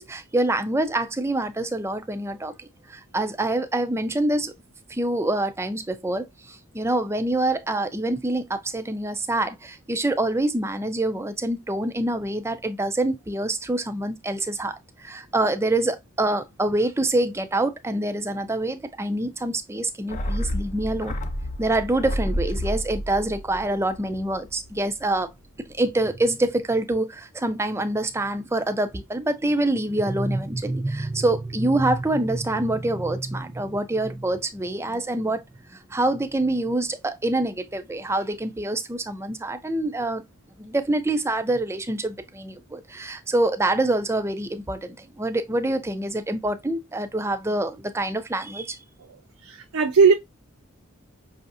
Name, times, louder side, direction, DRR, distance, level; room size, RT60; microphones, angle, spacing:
voice 1, 0.0-4.5 4.9-21.1 21.6-25.3 25.6-35.4 35.7-40.2 40.6-48.8, right 2 dB, 10° right, 0.4 m, -26 dB
sound 1, 20.1-24.7 25.0-25.1, equal, 35° left, 0.6 m, -30 dB
voice 2, 49.4-50.1, right 5 dB, 80° right, 0.5 m, -17 dB
5.5 x 2.7 x 2.5 m
head